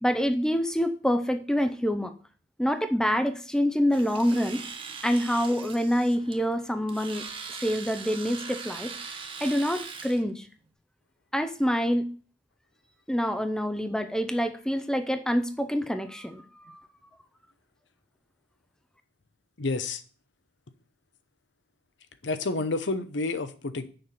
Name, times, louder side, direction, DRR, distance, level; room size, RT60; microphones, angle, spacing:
voice 1, 0.0-2.1 2.6-4.6 5.0-7.2 7.5-8.9 9.4-10.5 11.3-12.1 13.1-16.8, equal, 5° left, 0.5 m, -26 dB
Domestic sounds home sounds, 3.9-10.2, right 5 dB, 25° right, 0.9 m, -41 dB
voice 2, 19.6-20.0 22.2-23.9, left 3 dB, 65° left, 0.8 m, -29 dB
6.7 x 5.8 x 7.0 m
head